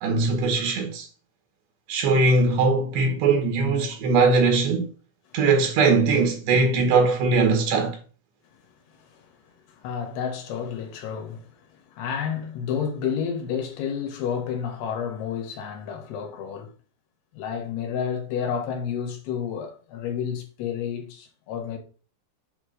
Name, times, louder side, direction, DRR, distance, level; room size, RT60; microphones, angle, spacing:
voice 1, 0.0-1.1 1.9-4.9 5.3-8.0, right 3 dB, 75° right, 3.6 m, -20 dB
voice 2, 9.0-9.3 9.7-16.7 17.3-21.8, left 7 dB, 70° left, 3.4 m, -30 dB
8.1 x 3.3 x 6.4 m
omnidirectional pair, 5.0 m